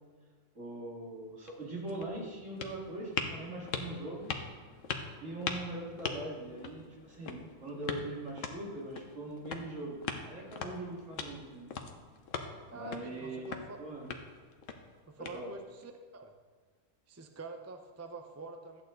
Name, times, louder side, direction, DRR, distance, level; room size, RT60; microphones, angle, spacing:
voice 1, 0.5-4.3 5.2-11.8 12.7-13.5 13.8-14.1 15.2-15.5, right 1 dB, 70° right, -3 dB, 2.8 m, -41 dB
sound 1, 1.3-15.8, left 5 dB, 75° left, 1.3 m, -42 dB
voice 2, 12.7-13.8 15.1-16.3 17.1-18.8, right 3 dB, 15° right, 5 dB, 0.5 m, -46 dB
13.5 x 8.6 x 4.0 m, 1.5 s
omnidirectional pair, 1.3 m